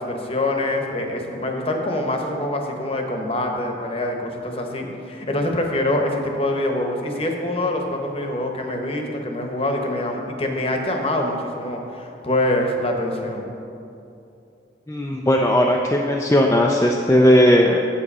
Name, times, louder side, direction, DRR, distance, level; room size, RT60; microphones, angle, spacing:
voice 1, 0.0-13.5, left 1 dB, 30° left, 2 dB, 1.0 m, -25 dB
voice 2, 14.9-17.8, equal, 15° left, -1 dB, 0.4 m, -17 dB
8.6 x 7.9 x 5.4 m, 2.7 s
head